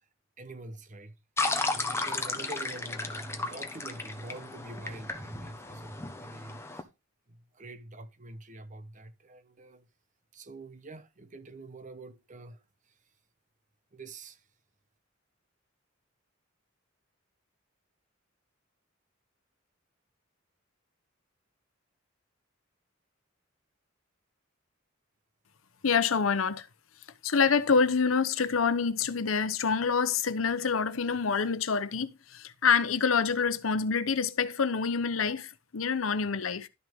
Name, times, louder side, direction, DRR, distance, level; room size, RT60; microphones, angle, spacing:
voice 1, 0.4-1.2 1.7-6.9 7.3-9.9 10.3-12.6 13.9-14.4, right 2 dB, 40° right, 0.9 m, -45 dB
sound 1, 1.4-6.8, left 3 dB, 15° left, 1.1 m, -34 dB
voice 2, 25.8-26.7 27.2-36.7, left 5 dB, 85° left, 0.8 m, -27 dB
12.5 x 6.1 x 3.5 m
head